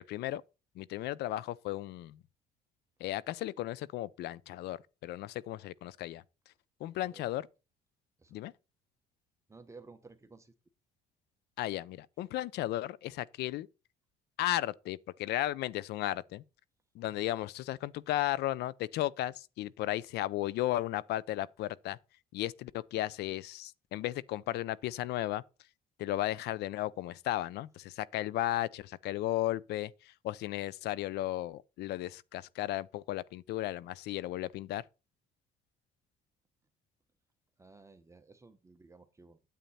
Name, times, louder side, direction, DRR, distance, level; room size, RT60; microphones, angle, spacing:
voice 1, 0.1-0.4 0.8-2.2 3.0-6.2 6.8-7.5 8.3-8.5 11.6-13.7 14.4-16.4 16.9-22.0 22.3-25.4 26.0-34.8, left 14 dB, 75° left, 0.6 m, -35 dB
voice 2, 9.5-10.5 17.1-17.2 37.6-39.4, right 3 dB, 15° right, 1.1 m, -55 dB
9.2 x 8.3 x 4.2 m
cardioid pair, 110°, 17 cm